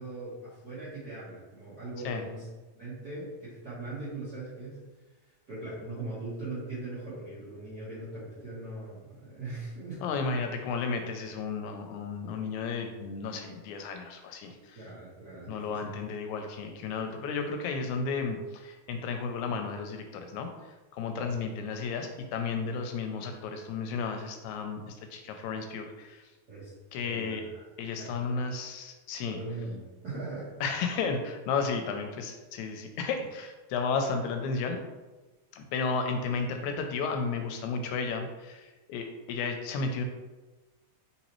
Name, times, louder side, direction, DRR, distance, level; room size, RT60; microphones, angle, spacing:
voice 1, 0.0-2.5 2.7-4.8 5.5-10.0 10.3-10.4 14.7-15.9 21.1-21.3 26.5-27.6 28.0-28.4 29.2-30.5, right 2 dB, 55° right, -11 dB, 1.1 m, -40 dB
voice 2, 10.0-14.8 15.5-20.5 20.9-26.2 26.9-27.4 27.8-29.4 30.6-34.8 35.5-40.0, left 4 dB, 80° left, 5 dB, 1.9 m, -33 dB
4.1 x 4.0 x 3.0 m, 1.2 s
omnidirectional pair, 3.4 m